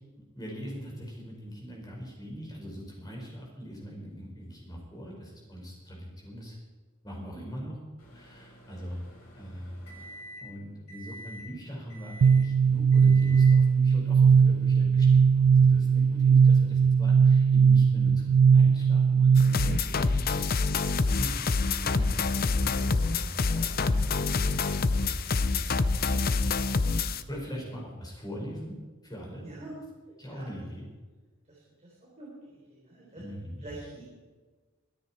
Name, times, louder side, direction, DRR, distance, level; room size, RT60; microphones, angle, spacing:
voice 1, 0.3-6.6 7.0-7.8 8.1-9.0 9.3-10.0 10.4-20.4 21.1-26.3 27.3-28.8 29.0-29.4 30.2-30.8 33.1-33.6, equal, 20° left, -2 dB, 5.3 m, -41 dB
Microwave oven, 8.0-10.6 10.9-11.4 11.9-12.5 12.9-13.5, equal, 80° left, 6.4 m, -48 dB
sound 1, 12.2-19.8, right 6 dB, 80° right, 0.4 m, -19 dB
sound 2, 19.3-27.2, left 3 dB, 45° left, 0.6 m, -27 dB
voice 2, 31.5-33.2 33.6-34.0, right 2 dB, 30° right, -5 dB, 4.2 m, -46 dB
23.5 x 10.0 x 4.6 m, 1.3 s
head